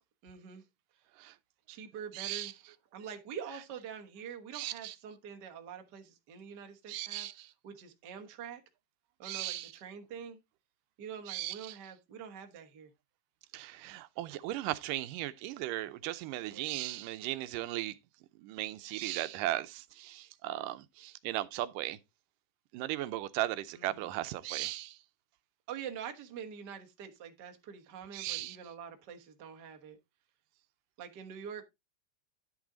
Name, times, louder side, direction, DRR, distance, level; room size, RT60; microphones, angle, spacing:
voice 1, 0.2-0.6 0.9-1.0 1.7-2.6 2.9-7.3 7.6-8.6 9.2-10.4 11.0-12.9 16.5-16.8 23.7-24.1 25.7-30.0 31.0-31.7, right 7 dB, 50° right, 1.3 m, -45 dB
voice 2, 2.1-2.5 4.5-5.0 6.9-7.5 9.2-9.7 11.3-11.8 13.5-18.0 18.4-22.0 22.7-25.0 28.1-28.6, right 15 dB, 85° right, 2.3 m, -37 dB
10.5 x 6.1 x 3.8 m
omnidirectional pair, 3.8 m